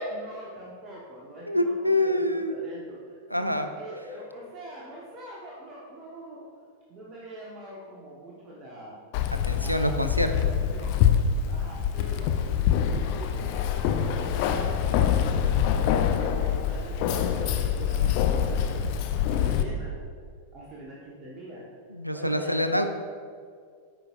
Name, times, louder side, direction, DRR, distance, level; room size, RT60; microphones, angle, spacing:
voice 1, 0.0-6.4 6.9-9.0 9.5-11.0 11.5-12.3 12.8-15.6 16.1-18.8 19.2-19.9 20.5-21.6 22.1-22.7, right 1 dB, 30° right, -4 dB, 1.0 m, -44 dB
voice 2, 1.5-2.5 3.3-3.7 9.4-10.3 21.9-22.9, left 1 dB, 90° right, 7 dB, 0.4 m, -25 dB
Keys jangling, 9.1-19.6, left 8 dB, 45° left, 0.4 m, -25 dB
8.9 x 4.9 x 2.3 m, 2.1 s
figure-of-eight pair, 90°, 0 cm